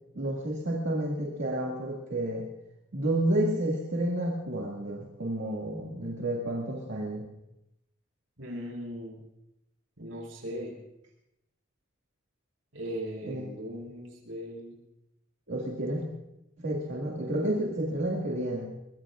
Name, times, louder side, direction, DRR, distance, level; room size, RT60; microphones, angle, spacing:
voice 1, 0.2-2.4 2.9-7.3 13.2-13.4 15.5-16.0 16.6-18.7, right 1 dB, 65° right, -4 dB, 2.2 m, -30 dB
voice 2, 8.4-9.2 10.0-10.8 12.7-14.8, equal, 90° right, 0 dB, 6.3 m, -38 dB
22.5 x 22.5 x 2.5 m, 0.88 s
head